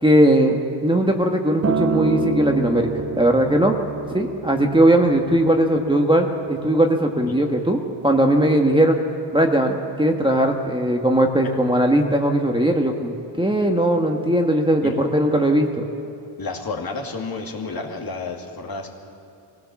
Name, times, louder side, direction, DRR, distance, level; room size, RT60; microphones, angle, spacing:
voice 1, 0.0-3.8 4.1-9.0 9.3-15.8, right 1 dB, 10° right, 2 dB, 1.4 m, -19 dB
Acoustic guitar, 1.6-5.9 6.8-6.9, right 6 dB, 30° right, 0.7 m, -28 dB
voice 2, 16.4-18.9, left 3 dB, 45° left, 0 dB, 2.5 m, -31 dB
22.5 x 17.0 x 7.1 m, 2.7 s
cardioid pair, 90°, 49 cm